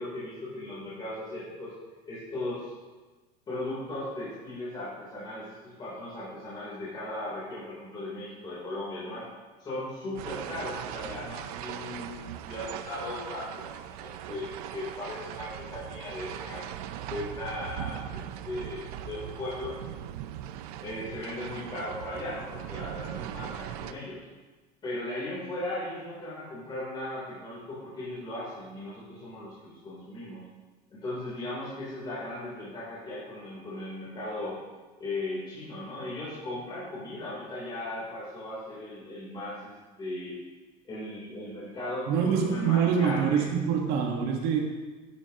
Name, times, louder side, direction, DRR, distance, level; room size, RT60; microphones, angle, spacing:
voice 1, 0.0-1.7 2.0-2.7 3.5-9.2 9.6-16.6 17.1-19.7 20.8-24.2 24.8-30.4 30.9-34.6 35.0-39.7 40.0-40.3 40.9-43.5, left 1 dB, 25° left, -8 dB, 3.2 m, -37 dB
sound 1, 10.2-23.9, right 11 dB, 85° right, 0.6 m, -39 dB
voice 2, 42.1-44.6, right 7 dB, 60° right, 1 dB, 1.4 m, -25 dB
11.5 x 8.8 x 2.9 m, 1.3 s
cardioid pair, 145°, 19 cm